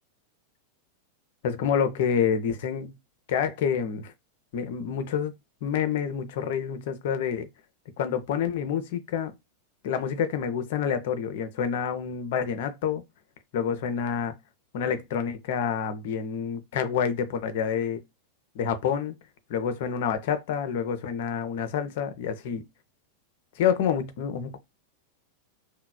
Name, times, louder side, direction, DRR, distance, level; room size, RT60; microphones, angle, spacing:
voice 1, 1.4-2.9 3.3-4.1 4.5-5.4 5.6-7.5 8.0-9.3 9.8-13.0 13.5-14.4 14.7-18.0 18.6-19.2 19.5-22.6 23.6-24.6, left 7 dB, 55° left, 0.4 m, -28 dB
3.1 x 2.0 x 2.2 m
figure-of-eight pair, 90°, 0 cm